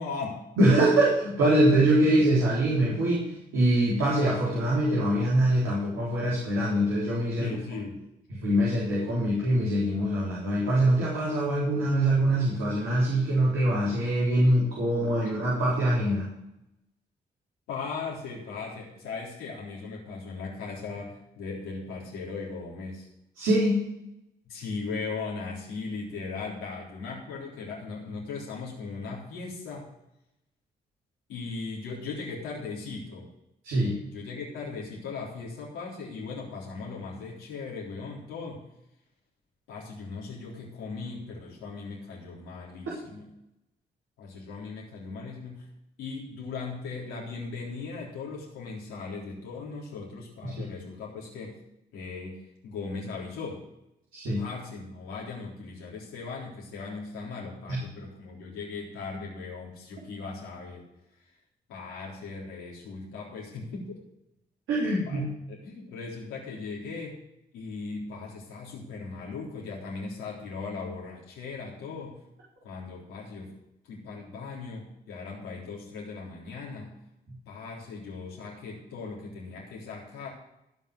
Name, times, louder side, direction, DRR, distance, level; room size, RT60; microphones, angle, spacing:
voice 1, 0.0-0.4 7.4-8.0 15.2-15.3 17.7-23.1 24.5-29.9 31.3-33.3 34.1-38.6 39.7-43.3 44.2-45.7 46.0-51.6 51.9-53.6 54.4-60.9 61.2-61.3 61.7-63.9 65.1-67.2 67.5-72.2 72.6-73.6 73.8-76.9 77.5-80.3, left 4 dB, 85° left, -3 dB, 3.7 m, -38 dB
voice 2, 0.6-7.6 8.3-16.3 23.4-23.8 33.6-34.0 50.4-50.5 54.1-54.4 57.7-57.8 64.7-65.3, right 1 dB, 80° right, -7 dB, 4.2 m, -24 dB
16.0 x 5.6 x 8.0 m, 0.84 s
hypercardioid pair, 40°, 20 cm